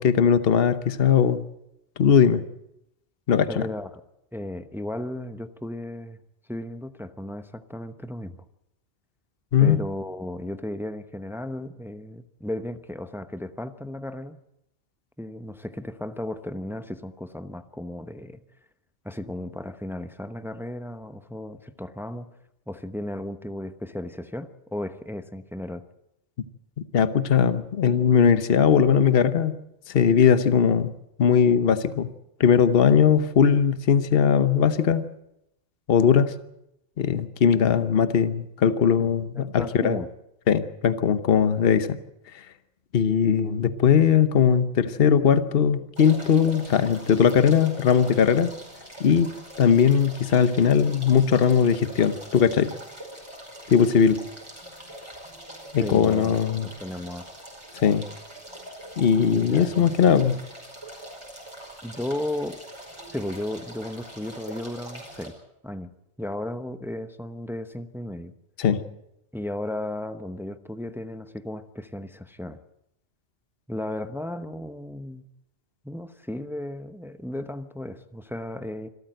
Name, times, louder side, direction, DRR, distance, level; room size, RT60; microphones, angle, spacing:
voice 1, 0.0-1.4 2.0-2.4 3.3-3.7 9.5-9.8 26.9-29.6 29.9-30.9 31.2-32.1 32.4-35.0 35.9-36.3 37.0-40.0 40.5-42.0 42.9-48.5 49.0-49.3 49.6-52.7 53.7-54.2 55.7-56.7 57.7-58.1 59.0-60.4 68.6-68.8, left 7 dB, 55° left, 12 dB, 1.1 m, -19 dB
voice 2, 3.5-4.0 4.3-6.2 6.5-8.3 9.6-14.4 15.2-18.4 19.0-22.3 22.7-25.8 39.0-39.1 39.3-40.1 55.8-57.3 59.3-59.9 61.8-62.6 63.1-65.4 65.6-65.9 66.2-68.3 69.3-72.6 73.7-75.2 75.8-78.9, left 1 dB, ahead, 10 dB, 0.8 m, -34 dB
sound 1, 46.0-65.3, right 1 dB, 25° right, 5.3 m, -43 dB
26.0 x 13.5 x 7.8 m, 0.84 s
omnidirectional pair, 1.2 m